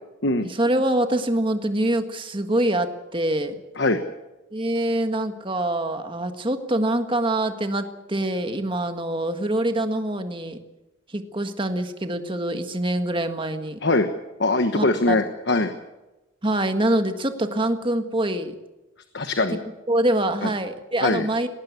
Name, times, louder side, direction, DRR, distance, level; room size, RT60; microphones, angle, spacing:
voice 1, 0.4-3.5 4.5-10.6 11.1-13.8 14.7-15.2 16.4-18.6 19.9-21.5, right 1 dB, 25° right, 7 dB, 1.7 m, -25 dB
voice 2, 14.4-15.7 19.1-19.6 20.4-20.5 21.0-21.3, left 2 dB, 55° left, 8 dB, 1.2 m, -22 dB
19.5 x 19.0 x 8.4 m, 1.0 s
head